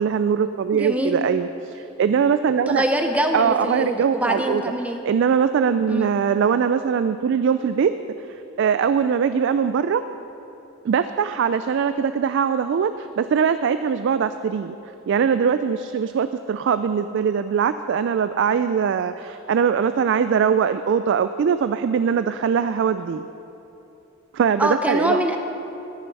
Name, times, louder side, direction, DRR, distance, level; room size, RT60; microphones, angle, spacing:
voice 1, 0.0-2.8 3.3-4.6 5.0-7.9 8.6-10.0 10.8-14.8 15.1-23.3 24.3-25.2, right 7 dB, 60° right, 11 dB, 0.3 m, -21 dB
voice 2, 0.7-1.2 2.7-5.0 5.9-6.1 24.6-25.4, equal, 5° right, 4 dB, 0.8 m, -24 dB
14.0 x 7.5 x 5.4 m, 2.9 s
head